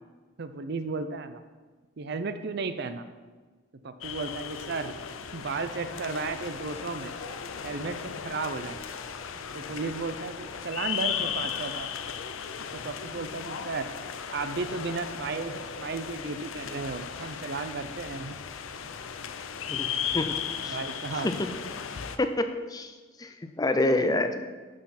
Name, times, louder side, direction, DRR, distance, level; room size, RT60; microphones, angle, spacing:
voice 1, 0.4-1.4 2.0-3.0 3.8-4.9 5.3-7.1 7.4-8.8 9.3-11.9 12.7-13.9 14.3-18.4 20.6-21.3 23.7-24.5, right 4 dB, 50° right, 10 dB, 0.5 m, -34 dB
sound 1, 4.0-22.2, left 7 dB, 75° left, 0.6 m, -36 dB
voice 2, 22.2-22.9 23.2-24.5, left 2 dB, 20° left, 8 dB, 0.4 m, -27 dB
11.5 x 5.9 x 4.2 m, 1.4 s
head